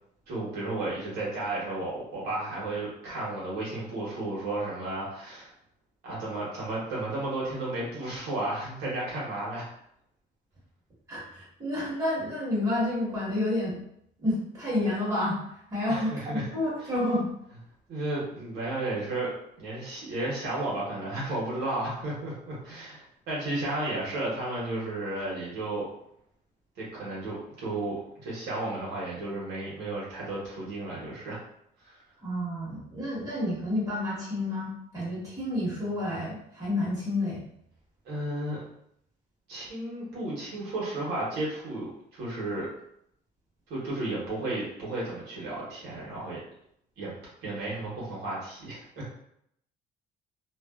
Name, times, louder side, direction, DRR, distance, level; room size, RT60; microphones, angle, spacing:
voice 1, 0.3-5.5 6.0-9.7 15.9-16.5 16.8-16.9 17.9-19.3 19.6-25.9 26.8-31.4 31.8-32.0 38.0-38.6 39.5-42.7 43.7-46.4 47.0-47.1 47.4-49.1, right 2 dB, 75° right, -6 dB, 1.1 m, -33 dB
voice 2, 11.1-13.8 14.2-15.4 15.7-17.3 32.2-37.4, left 1 dB, 20° right, -8 dB, 1.3 m, -29 dB
2.5 x 2.2 x 2.3 m, 0.74 s
cardioid pair, 110°, 17 cm